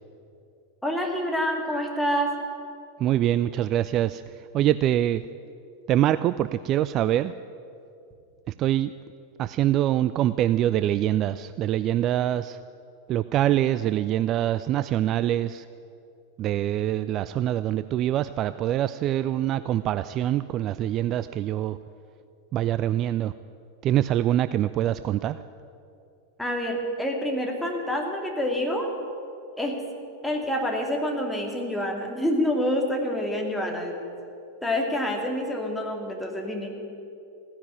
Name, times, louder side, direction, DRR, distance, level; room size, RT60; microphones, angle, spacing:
voice 1, 0.8-2.3 26.4-28.9 29.6-29.8 30.2-33.9 34.6-36.7, equal, 5° left, 1 dB, 2.5 m, -27 dB
voice 2, 3.0-4.2 4.5-5.2 5.9-7.3 8.5-8.9 9.4-12.6 13.1-15.7 16.4-21.8 22.5-23.3 23.8-25.4, right 12 dB, 35° right, 14 dB, 0.3 m, -24 dB
15.5 x 10.0 x 9.1 m, 2.6 s
figure-of-eight pair, 90°, 0 cm